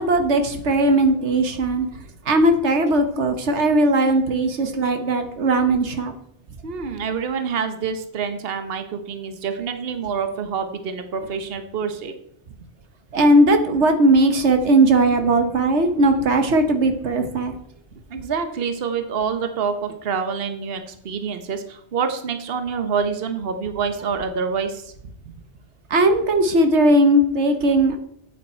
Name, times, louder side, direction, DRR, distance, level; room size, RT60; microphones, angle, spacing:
voice 1, 0.0-1.9 2.2-6.1 13.1-17.5 25.9-28.0, right 1 dB, 85° right, 7 dB, 1.4 m, -18 dB
voice 2, 6.6-12.1 18.1-24.9, right 6 dB, 60° right, 8 dB, 1.2 m, -27 dB
8.6 x 8.3 x 4.4 m, 0.70 s
omnidirectional pair, 1.1 m